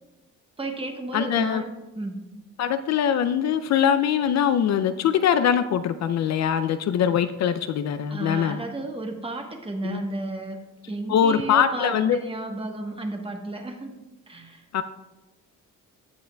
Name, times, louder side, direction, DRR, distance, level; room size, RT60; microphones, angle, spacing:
voice 1, 0.6-2.2 8.1-10.6 10.9-13.9 14.3-14.6, right 2 dB, 15° right, 3 dB, 1.1 m, -33 dB
voice 2, 1.1-1.6 2.6-8.6 9.8-10.0 11.1-12.2 14.7-14.8, left 9 dB, 55° left, 11 dB, 0.4 m, -22 dB
15.0 x 5.5 x 2.2 m, 1.0 s
cardioid pair, 100°, 33 cm